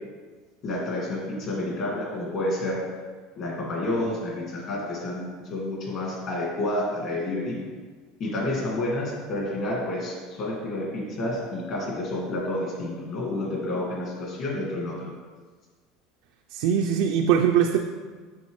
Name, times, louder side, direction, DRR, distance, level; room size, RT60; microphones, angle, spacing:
voice 1, 0.6-2.8 3.4-7.6 8.2-14.9, left 1 dB, 40° left, -3 dB, 1.7 m, -29 dB
voice 2, 16.5-17.8, right 8 dB, 60° right, 3 dB, 0.4 m, -21 dB
6.9 x 5.6 x 3.1 m, 1.5 s
cardioid pair, 170°, 0 cm